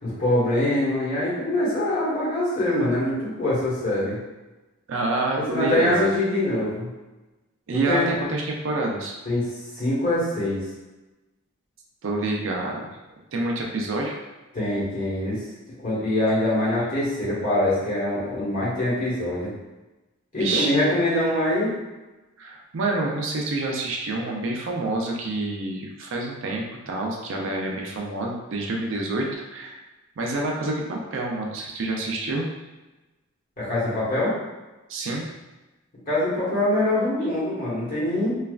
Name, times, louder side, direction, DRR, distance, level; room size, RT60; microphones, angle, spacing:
voice 1, 0.0-4.2 5.5-6.9 7.9-8.1 9.2-9.5 9.7-10.6 14.5-15.4 15.8-19.5 20.3-21.7 33.6-34.3 36.1-38.3, left 1 dB, 40° left, -8 dB, 1.2 m, -24 dB
voice 2, 4.9-6.1 7.7-9.2 12.0-12.9 13.3-14.2 20.4-20.7 22.4-29.8 30.2-32.5 34.9-35.3, right 2 dB, 65° right, 0 dB, 0.5 m, -27 dB
3.2 x 2.3 x 2.3 m, 1.1 s
head